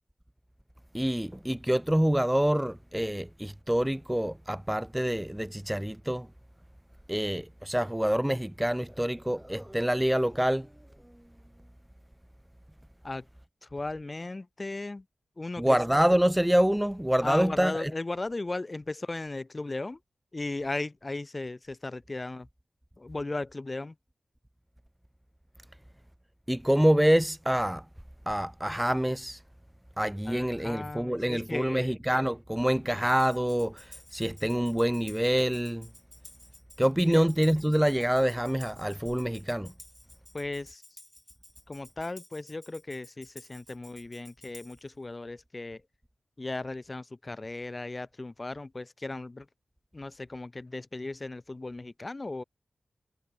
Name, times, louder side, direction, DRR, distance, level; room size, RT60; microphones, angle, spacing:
voice 1, 0.9-6.3 7.1-10.7 15.6-17.9 26.5-27.8 28.3-29.4 30.0-35.9 36.8-39.7, equal, 5° right, 0.4 m, -26 dB
voice 2, 13.6-15.1 15.4-15.8 17.2-20.0 20.3-22.5 23.0-24.0 30.3-31.9 37.1-37.3 40.3-40.8 41.7-45.8 46.4-49.5 49.9-52.4, left 2 dB, 35° left, 2.1 m, -36 dB
Tambourine, 33.2-44.9, left 1 dB, 10° left, 7.0 m, -53 dB
cardioid pair, 55°, 0 cm